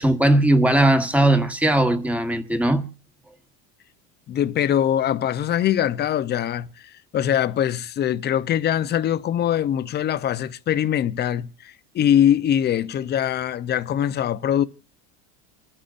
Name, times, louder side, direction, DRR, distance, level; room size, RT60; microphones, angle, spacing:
voice 1, 0.0-2.8, right 1 dB, 5° right, 1.4 m, -18 dB
voice 2, 4.3-14.6, left 10 dB, 30° left, 0.7 m, -22 dB
28.5 x 10.0 x 2.6 m
cardioid pair, 140°, 35 cm